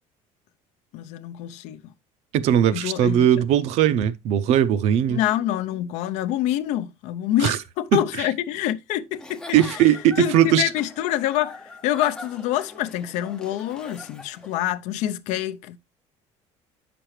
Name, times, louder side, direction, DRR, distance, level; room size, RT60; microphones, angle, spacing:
voice 1, 0.9-1.8 2.7-3.4 5.1-9.8 10.2-15.8, left 12 dB, 65° left, 0.6 m, -26 dB
voice 2, 2.3-5.2 7.4-7.6 7.9-8.3 9.5-10.7, right 10 dB, 55° right, 0.6 m, -19 dB
Giggle / Chuckle chortle, 9.1-14.6, left 2 dB, 5° left, 0.5 m, -43 dB
8.8 x 6.1 x 3.2 m
cardioid pair, 165°, 13 cm